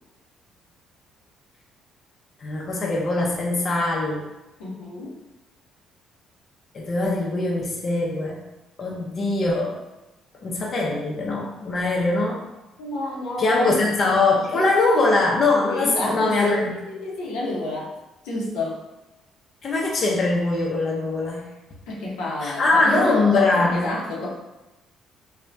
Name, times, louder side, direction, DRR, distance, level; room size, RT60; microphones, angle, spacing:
voice 1, 2.4-4.3 6.7-8.4 8.8-9.8 10.4-12.4 13.4-16.7 19.6-21.5 22.4-23.9, left 2 dB, 45° left, -2 dB, 0.5 m, -22 dB
voice 2, 4.6-5.1 12.8-13.8 15.7-17.9 18.2-18.8 21.9-24.3, left 2 dB, 85° left, -4 dB, 0.7 m, -29 dB
2.6 x 2.1 x 3.2 m, 1.0 s
supercardioid pair, 75°, 0 cm